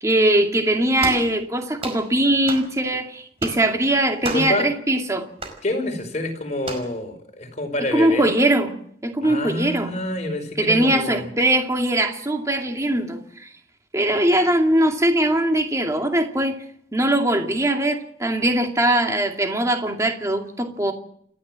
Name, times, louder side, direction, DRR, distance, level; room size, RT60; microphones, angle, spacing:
voice 1, 0.0-5.3 7.9-8.7 9.0-9.9 10.6-13.5 13.9-16.6 16.9-20.9, right 1 dB, 20° right, 2.4 m, -21 dB
dh clap collection, 1.0-1.3 1.8-2.0 2.5-2.7 3.4-3.6 4.2-4.6 5.4-5.6 6.6-6.9, right 2 dB, 35° right, 5.0 m, -31 dB
voice 2, 4.3-4.7 5.6-8.3 9.2-11.3, left 1 dB, 40° left, 5.0 m, -27 dB
29.0 x 12.5 x 7.6 m
head